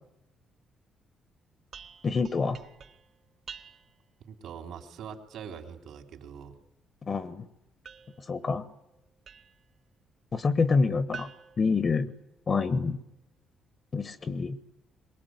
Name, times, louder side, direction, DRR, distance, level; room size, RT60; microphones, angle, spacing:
sound 1, 1.7-4.1 7.8-9.7 11.1-12.6, right 7 dB, 60° right, 1.7 m, -49 dB
voice 1, 2.0-2.6 7.1-7.5 8.2-8.7 10.3-11.3 11.6-12.1 12.5-13.0 13.9-14.6, left 4 dB, 40° left, 12 dB, 1.3 m, -27 dB
voice 2, 4.2-6.6, right 7 dB, 75° right, 5 dB, 3.6 m, -43 dB
23.0 x 20.5 x 9.6 m, 0.87 s
cardioid pair, 90°, 0 cm